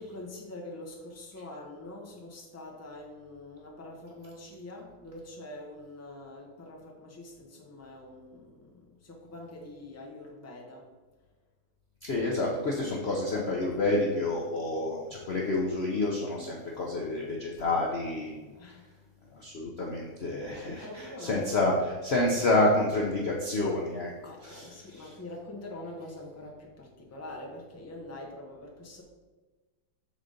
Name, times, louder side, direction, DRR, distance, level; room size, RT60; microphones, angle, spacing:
voice 1, 0.0-10.9 16.8-17.1 18.5-18.8 19.4-19.6 20.6-21.5 24.2-29.0, left 1 dB, 15° left, 0 dB, 0.5 m, -44 dB
voice 2, 12.0-18.3 19.3-24.1 24.4-25.1, left 2 dB, 75° left, -2 dB, 0.5 m, -29 dB
7.0 x 3.8 x 5.1 m, 1.3 s
omnidirectional pair, 2.2 m